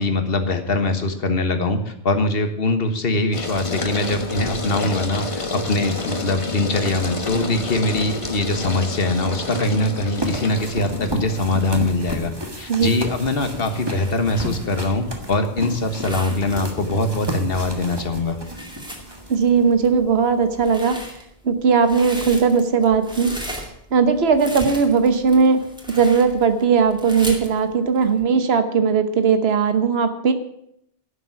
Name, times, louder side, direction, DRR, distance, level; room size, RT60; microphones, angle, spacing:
voice 1, 0.0-18.4, left 2 dB, 65° left, 7 dB, 1.6 m, -22 dB
sound 1, 3.3-20.8, left 2 dB, 30° left, 1.3 m, -31 dB
sound 2, 10.2-19.7, equal, 25° right, 1.7 m, -32 dB
sound 3, 12.4-28.2, equal, 5° right, 2.3 m, -38 dB
voice 2, 19.3-21.0 21.4-23.4 23.9-25.6 26.0-30.3, right 5 dB, 75° right, 10 dB, 1.3 m, -18 dB
11.5 x 7.2 x 9.3 m, 0.73 s
omnidirectional pair, 1.1 m